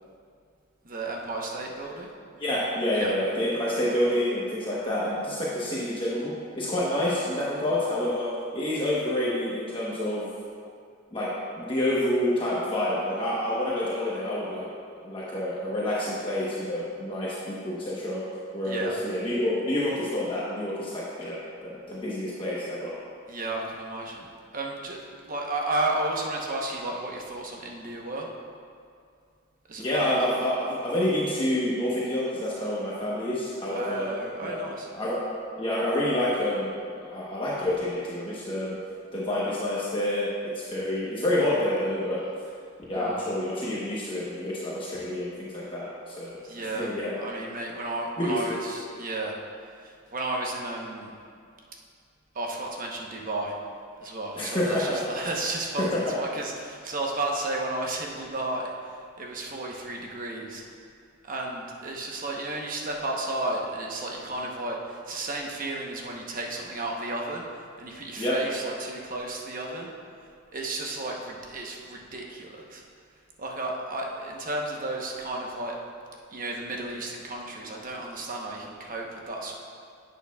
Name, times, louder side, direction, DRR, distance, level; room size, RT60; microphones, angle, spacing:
voice 1, 0.8-2.1 2.9-3.1 18.6-19.0 23.3-24.3 24.5-28.3 29.7-30.1 33.7-34.9 42.9-43.2 46.4-49.4 49.8-51.1 52.3-53.5 54.0-58.9 59.2-60.6 61.2-67.4 67.8-69.9 70.5-72.8 73.4-75.8 76.3-79.5, right 2 dB, 45° right, -1 dB, 1.0 m, -33 dB
voice 2, 2.4-10.3 11.1-11.3 11.6-14.7 15.0-18.2 18.5-22.9 29.8-34.1 34.4-34.6 34.9-35.2 35.6-38.8 39.1-42.2 42.9-47.2 48.2-48.6 54.4-55.0 55.8-56.0 68.2-68.3, left 1 dB, 25° left, -7 dB, 1.0 m, -28 dB
10.5 x 8.3 x 2.3 m, 2.2 s
head